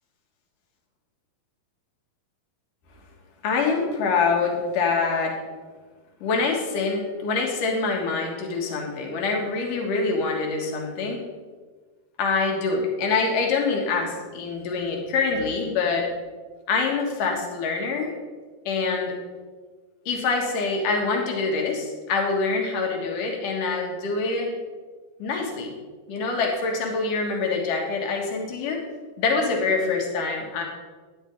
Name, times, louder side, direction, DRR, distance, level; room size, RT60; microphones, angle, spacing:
voice 1, 3.4-5.4 6.2-11.2 12.2-16.1 16.7-18.1 18.7-19.1 20.1-24.5 25.2-25.7 26.1-28.8 29.2-30.6, left 4 dB, 70° left, 1 dB, 3.0 m, -25 dB
12.5 x 10.5 x 3.5 m, 1.4 s
omnidirectional pair, 4.1 m